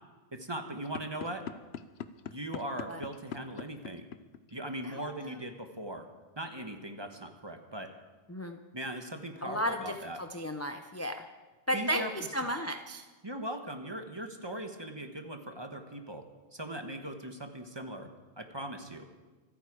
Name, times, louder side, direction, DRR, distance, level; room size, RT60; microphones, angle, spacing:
voice 1, 0.3-1.4 2.3-4.1 4.5-6.1 6.4-7.9 8.7-10.2 11.7-12.1 13.2-18.1 18.4-19.1, right 1 dB, 25° right, 5 dB, 1.2 m, -39 dB
sound 1, 0.8-4.8, left 8 dB, 65° left, 0.9 m, -41 dB
voice 2, 4.8-5.4 8.3-8.6 9.4-11.2 11.7-13.1, equal, 15° left, 6 dB, 0.5 m, -34 dB
26.0 x 9.1 x 4.9 m, 1.3 s
omnidirectional pair, 1.2 m